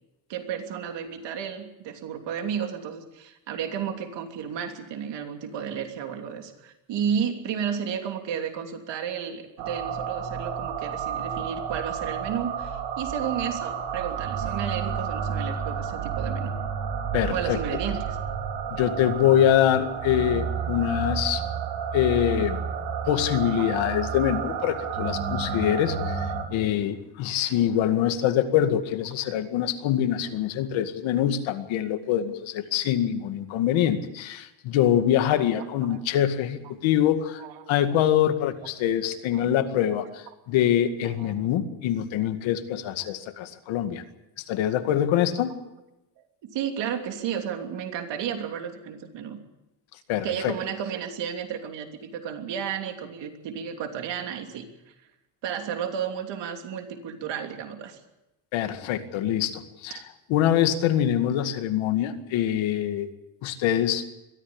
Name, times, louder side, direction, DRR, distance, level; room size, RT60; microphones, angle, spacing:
voice 1, 0.3-16.5 17.3-18.2 35.3-36.0 37.4-37.7 39.3-39.6 41.0-41.3 46.4-49.4 50.2-54.7 55.4-58.0, right 8 dB, 60° right, 5 dB, 3.1 m, -32 dB
sound 1, 9.6-26.5, right 7 dB, 90° right, 4.0 m, -31 dB
voice 2, 17.1-17.6 18.7-21.4 21.9-22.6 23.1-44.0 44.5-45.6 50.1-50.5 58.5-60.0 60.3-63.1 63.4-64.1, left 10 dB, 70° left, 8 dB, 2.2 m, -24 dB
22.5 x 14.0 x 8.8 m, 0.94 s
cardioid pair, 150°, 48 cm